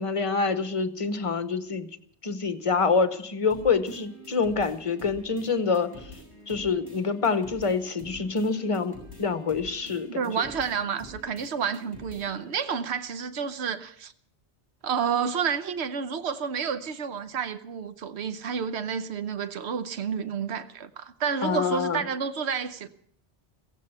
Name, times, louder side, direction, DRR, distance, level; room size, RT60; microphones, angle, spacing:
voice 1, 0.0-1.9 2.2-5.9 6.5-10.1 21.4-22.0, left 4 dB, 30° left, 0.9 m, -26 dB
sound 1, 3.5-12.5, left 1 dB, 20° right, 8.1 m, -47 dB
voice 2, 10.1-14.1 14.8-22.9, right 6 dB, 75° right, 1.1 m, -30 dB
16.0 x 15.5 x 5.6 m
omnidirectional pair, 1.1 m